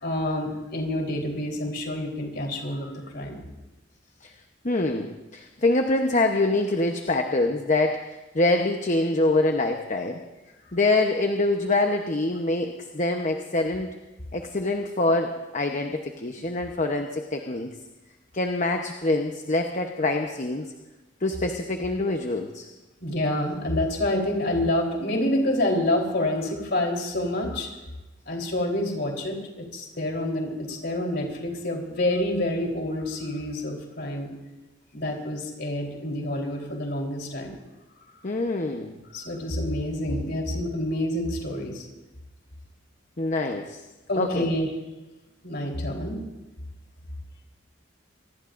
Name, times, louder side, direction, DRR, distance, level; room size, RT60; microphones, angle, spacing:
voice 1, 0.0-3.4 23.0-27.7 28.3-34.3 34.9-37.5 39.1-41.8 44.1-44.7 45.4-46.2, left 1 dB, 55° left, 0 dB, 3.9 m, -28 dB
voice 2, 4.6-10.2 10.7-13.9 14.3-17.7 18.3-20.7 21.2-22.7 38.2-39.0 43.2-43.8 44.2-44.5, left 2 dB, 40° left, 4 dB, 1.0 m, -25 dB
26.5 x 20.0 x 2.6 m, 1.1 s
head